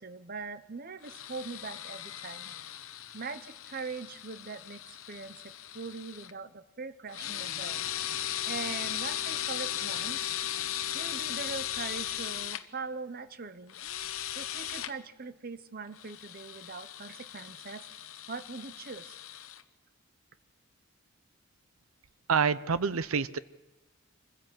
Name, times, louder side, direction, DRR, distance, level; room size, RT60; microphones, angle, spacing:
voice 1, 0.0-2.5 3.1-4.8 5.1-7.9 8.4-10.2 10.9-13.8 14.3-17.9 18.3-19.2, right 4 dB, 45° right, 12 dB, 0.9 m, -41 dB
sound 1, 1.0-6.3 7.1-12.6 13.7-14.9 16.0-19.6, left 11 dB, 75° left, 0.9 m, -37 dB
voice 2, 22.3-23.4, right 6 dB, 85° right, 16 dB, 0.6 m, -27 dB
24.5 x 16.0 x 7.5 m, 1.2 s
head